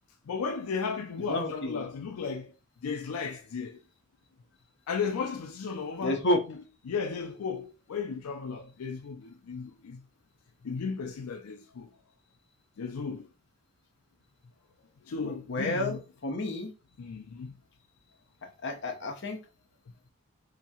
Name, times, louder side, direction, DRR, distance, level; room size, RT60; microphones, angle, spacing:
voice 1, 0.3-2.5 2.8-3.8 4.9-6.2 6.9-10.0 10.6-11.9 12.8-13.3 15.1-16.0 17.0-17.5, left 5 dB, 90° left, 0.4 m, -35 dB
voice 2, 1.3-1.8 6.0-6.4 15.2-16.7 18.6-19.4, left 1 dB, 55° left, 0.7 m, -30 dB
3.4 x 2.9 x 2.8 m
head